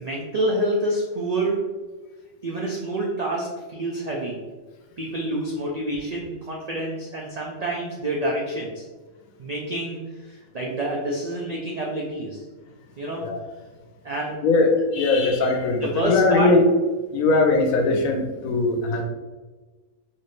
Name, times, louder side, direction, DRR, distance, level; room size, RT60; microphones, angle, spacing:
voice 1, 0.0-1.6 2.4-4.4 5.0-8.9 9.4-12.4 13.0-13.3 14.0-14.3 15.8-16.5, right 1 dB, 80° right, -2 dB, 0.3 m, -27 dB
voice 2, 14.4-16.6 17.1-19.0, left 3 dB, 85° left, 3 dB, 1.1 m, -20 dB
4.2 x 2.6 x 3.2 m, 1.3 s
omnidirectional pair, 1.4 m